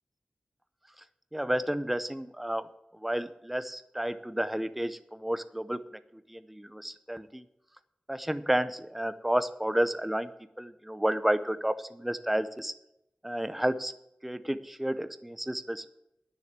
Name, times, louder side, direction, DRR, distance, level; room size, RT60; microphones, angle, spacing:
voice 1, 1.3-2.7 3.0-5.8 6.3-7.4 8.1-10.3 10.6-12.7 13.2-13.9 14.2-15.9, right 1 dB, 5° right, 12 dB, 0.6 m, -31 dB
10.5 x 6.6 x 8.1 m, 0.85 s
wide cardioid pair, 100°, 3 cm